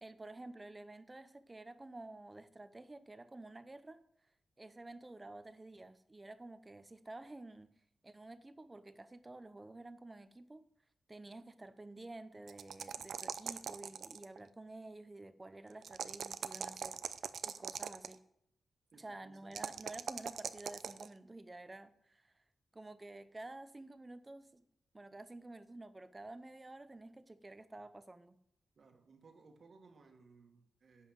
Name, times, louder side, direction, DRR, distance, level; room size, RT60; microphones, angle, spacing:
voice 1, 0.0-4.0 4.6-7.7 8.0-10.7 11.1-17.0 17.4-18.2 19.0-22.4 22.7-24.6 24.9-28.4, right 2 dB, 20° right, 0.7 m, -51 dB
sound 1, 12.5-14.4 15.8-18.1 19.5-21.1, right 7 dB, 75° right, 0.5 m, -41 dB
voice 2, 18.9-19.8 28.8-31.1, right 4 dB, 55° right, 1.7 m, -62 dB
10.5 x 5.7 x 7.9 m
wide cardioid pair, 140°, 0 cm